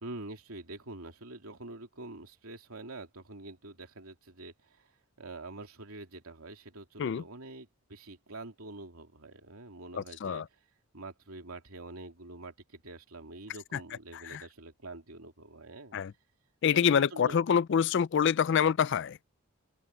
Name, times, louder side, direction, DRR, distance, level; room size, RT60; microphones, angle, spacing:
voice 1, 0.0-4.9 5.2-10.4 10.9-16.0 16.7-17.4, right 2 dB, 80° right, 2.8 m, -46 dB
voice 2, 16.6-19.2, left 7 dB, 55° left, 0.3 m, -26 dB
open air
head